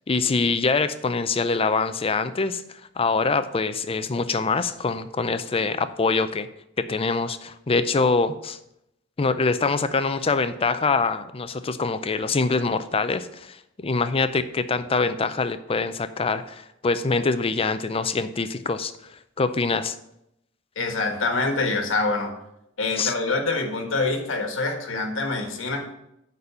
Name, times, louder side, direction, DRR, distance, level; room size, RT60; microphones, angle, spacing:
voice 1, 0.0-6.5 6.8-8.6 9.2-18.9 19.4-20.0 23.0-23.1, left 4 dB, 30° left, 12 dB, 0.5 m, -24 dB
voice 2, 20.7-22.3 22.8-25.9, left 3 dB, 90° left, 4 dB, 1.5 m, -25 dB
9.6 x 4.1 x 6.8 m, 0.82 s
head